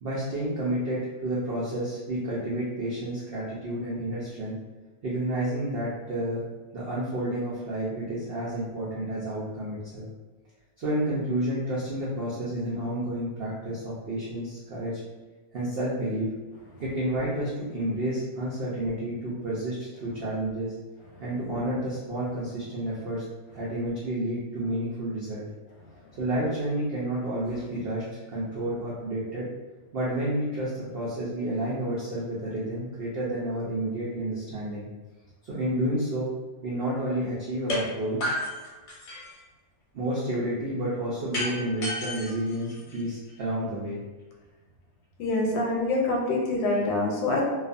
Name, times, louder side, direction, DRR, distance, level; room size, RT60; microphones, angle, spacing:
voice 1, 0.0-4.6 5.0-6.4 6.7-10.1 10.8-15.0 15.5-16.3 16.8-20.7 21.2-23.2 23.5-25.4 26.2-29.5 29.9-34.9 35.4-36.3 36.6-38.2 39.9-44.0, right 1 dB, 75° right, -7 dB, 0.5 m, -30 dB
sound 1, 37.7-37.8 38.2-39.4 41.3-43.3, left 1 dB, 55° left, 0.8 m, -32 dB
voice 2, 45.2-47.4, left 2 dB, 80° left, -2 dB, 1.1 m, -25 dB
2.4 x 2.4 x 2.5 m, 1.3 s
omnidirectional pair, 1.7 m